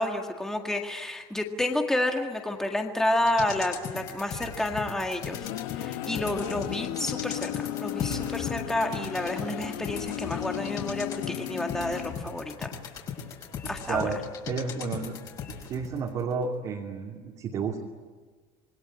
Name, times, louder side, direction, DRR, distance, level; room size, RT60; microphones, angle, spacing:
voice 1, 0.0-5.5 5.8-7.5 7.8-12.7 13.7-14.1, left 1 dB, 5° left, 3 dB, 1.9 m, -30 dB
sound 1, 3.1-16.0 16.3-16.4, left 6 dB, 35° left, 5.2 m, -38 dB
sound 2, 5.1-12.6, left 14 dB, 85° left, 1.5 m, -35 dB
voice 2, 13.9-15.2 15.7-17.8, right 5 dB, 35° right, -1 dB, 2.6 m, -31 dB
27.0 x 22.0 x 9.6 m, 1.4 s
cardioid pair, 175°, 11 cm